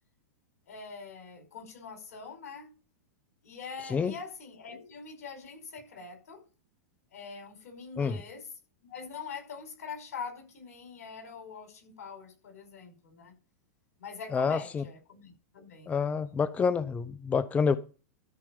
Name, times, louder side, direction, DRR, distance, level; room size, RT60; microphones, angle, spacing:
voice 1, 0.7-2.7 3.4-6.5 7.1-8.5 8.9-13.3 14.0-15.9, left 5 dB, 75° left, 5.4 m, -44 dB
voice 2, 14.3-14.8 15.9-17.8, left 5 dB, 15° left, 0.7 m, -27 dB
13.5 x 4.9 x 7.0 m
hypercardioid pair, 120°, 8 cm